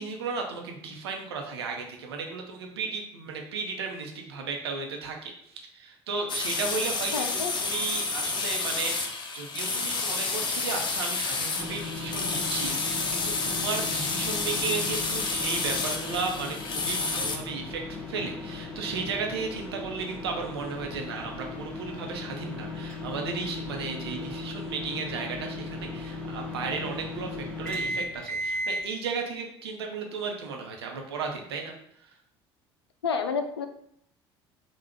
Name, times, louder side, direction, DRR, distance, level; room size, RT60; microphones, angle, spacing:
voice 1, 0.0-7.1 7.5-17.8 18.1-31.8, right 4 dB, 80° right, 2 dB, 0.8 m, -34 dB
sound 1, 6.3-17.4, left 4 dB, 35° left, 0.7 m, -30 dB
voice 2, 7.1-7.5 33.0-33.7, left 5 dB, 85° left, 8 dB, 0.4 m, -29 dB
sound 2, 11.6-28.8, left 2 dB, 5° left, 1.3 m, -37 dB
3.9 x 2.4 x 4.4 m, 0.69 s
hypercardioid pair, 60°, 13 cm